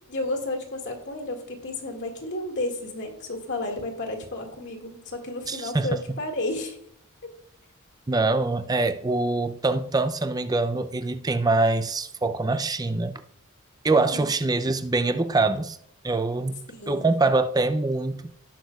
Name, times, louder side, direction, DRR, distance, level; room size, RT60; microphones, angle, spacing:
voice 1, 0.1-6.8 13.9-14.3 16.7-17.1, left 2 dB, 55° left, 2.2 m, -32 dB
voice 2, 5.5-6.2 8.1-13.2 13.8-15.8 16.0-18.4, right 3 dB, 15° right, 0.5 m, -24 dB
18.0 x 6.1 x 2.4 m
head